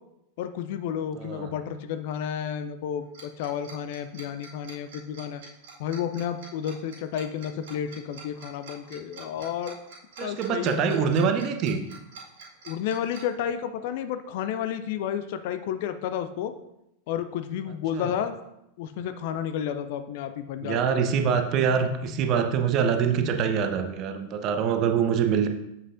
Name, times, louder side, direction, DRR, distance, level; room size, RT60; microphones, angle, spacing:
voice 1, 0.4-5.4 5.8-9.8 10.2-11.1 12.6-16.5 17.1-18.4 18.8-21.1, left 9 dB, 50° left, 10 dB, 0.4 m, -31 dB
voice 2, 1.2-1.5 10.2-11.8 17.9-18.1 20.6-25.5, right 7 dB, 35° right, 6 dB, 0.7 m, -24 dB
Tick-tock, 3.1-13.2, right 4 dB, 50° right, 1.9 m, -45 dB
7.3 x 6.5 x 2.6 m, 0.85 s
figure-of-eight pair, 90°, 0 cm